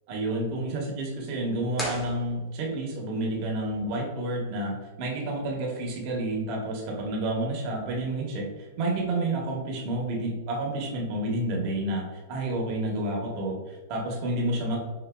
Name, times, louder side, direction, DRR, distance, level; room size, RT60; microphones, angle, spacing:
voice 1, 0.1-8.5 8.8-14.8, right 1 dB, 50° right, -1 dB, 1.1 m, -30 dB
sound 1, 1.7-2.9, left 1 dB, 15° left, 1.2 m, -36 dB
4.9 x 2.7 x 2.3 m, 1.2 s
hypercardioid pair, 125°, 0 cm